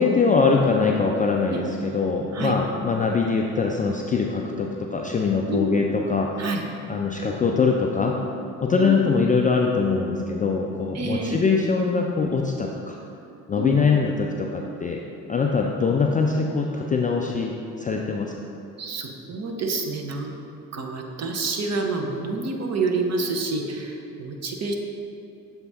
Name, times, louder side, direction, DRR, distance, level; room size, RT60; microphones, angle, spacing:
voice 1, 0.0-6.3 6.9-8.2 8.6-13.0 13.5-15.0 15.3-18.3, left 4 dB, 20° left, 0 dB, 0.3 m, -22 dB
voice 2, 5.5-5.8 6.4-6.6 8.7-9.0 10.9-11.4 13.6-13.8 18.8-20.3 20.7-24.7, right 3 dB, 35° right, 3 dB, 0.8 m, -28 dB
6.9 x 3.7 x 4.0 m, 2.6 s
figure-of-eight pair, 45°, 45 cm